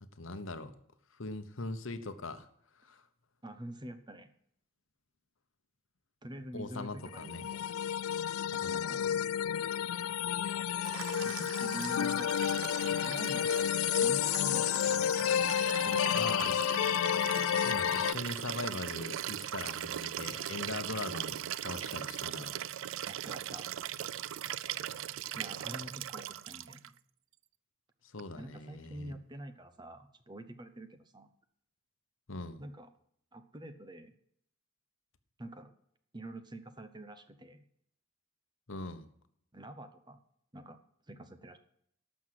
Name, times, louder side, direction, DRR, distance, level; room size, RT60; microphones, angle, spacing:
voice 1, 0.2-0.7 1.1-2.5 2.8-3.0 6.5-7.4 8.6-9.2 16.1-16.7 17.4-22.9 28.0-29.1 32.3-32.6 38.7-39.1, left 2 dB, 65° left, 10 dB, 1.0 m, -41 dB
voice 2, 3.4-4.3 6.2-7.8 8.5-9.1 11.2-13.7 14.0-15.3 15.8-16.7 23.0-23.7 25.3-26.9 28.4-31.3 32.6-32.9 33.3-34.1 35.4-35.7 36.1-37.7 39.5-40.2 40.5-40.8 41.1-41.6, right 1 dB, 20° right, 10 dB, 0.9 m, -46 dB
sound 1, 7.1-18.1, left 9 dB, 85° left, 0.4 m, -31 dB
Liquid, 10.8-26.9 28.2-28.3, right 11 dB, 65° right, 0.4 m, -40 dB
12.5 x 6.3 x 7.6 m, 0.69 s
head